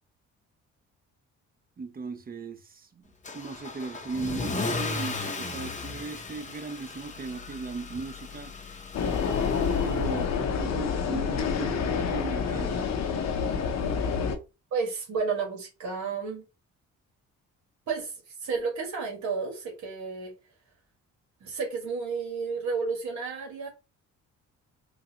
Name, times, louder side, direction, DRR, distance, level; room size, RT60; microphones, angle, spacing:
voice 1, 1.8-3.0 3.3-8.5 9.7-12.8, right 4 dB, 30° right, 0.8 m, -37 dB
Car / Engine starting / Accelerating revving vroom, 3.2-10.4, left 3 dB, 25° left, 0.8 m, -36 dB
sound 1, 8.9-14.4, left 6 dB, 60° left, 0.8 m, -28 dB
voice 2, 14.7-16.4 17.9-18.1 18.4-20.3 21.4-23.7, right 5 dB, 70° right, 1.5 m, -31 dB
3.8 x 2.4 x 2.8 m
cardioid pair, 90°, 30 cm